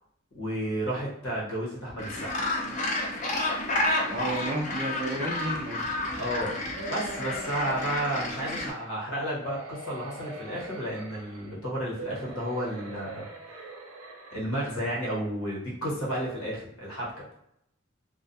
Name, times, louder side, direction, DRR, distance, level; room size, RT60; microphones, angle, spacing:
voice 1, 0.3-2.3 6.2-6.6 6.9-13.3 14.3-17.1, right 1 dB, 85° left, -5 dB, 1.1 m, -32 dB
Gull seagull, 2.0-8.7, left 2 dB, 35° left, 0.4 m, -30 dB
voice 2, 4.1-5.8 15.8-15.9, right 2 dB, 30° right, 3 dB, 0.3 m, -32 dB
sound 1, 6.7-8.9 9.4-11.5 11.9-14.8 15.4-15.5 15.7-15.8, right 1 dB, 85° right, 0.5 m, -42 dB
2.3 x 2.2 x 2.6 m, 0.77 s
head